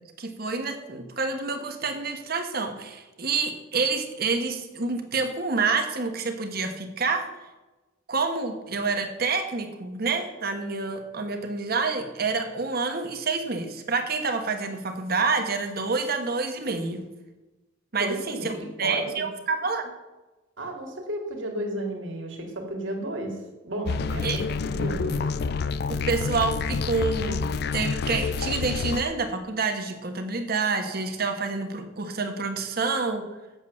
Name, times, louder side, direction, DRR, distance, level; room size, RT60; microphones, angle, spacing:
voice 1, 0.2-7.3 8.1-17.0 17.9-19.9 24.2-24.4 25.9-27.5 27.7-33.2, right 4 dB, 50° right, 6 dB, 1.2 m, -28 dB
voice 2, 18.0-19.2 20.6-23.3 23.6-25.2, right 1 dB, 75° right, 2 dB, 2.2 m, -33 dB
sound 1, 23.9-29.0, left 5 dB, 55° left, 0.4 m, -28 dB
8.3 x 7.3 x 6.3 m, 1.1 s
head